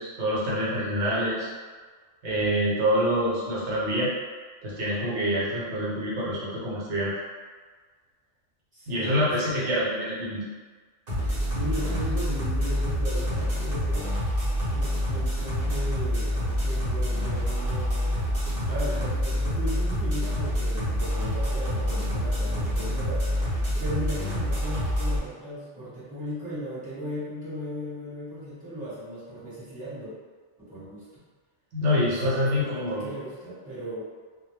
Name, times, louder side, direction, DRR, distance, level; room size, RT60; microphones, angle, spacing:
voice 1, 0.0-1.5 2.2-4.1 4.6-7.1 8.9-10.4 31.7-33.1, equal, 70° right, -7 dB, 0.9 m, -26 dB
voice 2, 8.7-9.2 9.5-9.7 11.2-14.4 14.7-18.1 18.7-30.1 30.6-31.0 32.0-34.0, equal, 5° right, -12 dB, 0.9 m, -37 dB
sound 1, 11.1-25.2, equal, 40° right, 0.8 m, -27 dB
2.1 x 2.1 x 3.0 m, 1.5 s
omnidirectional pair, 1.3 m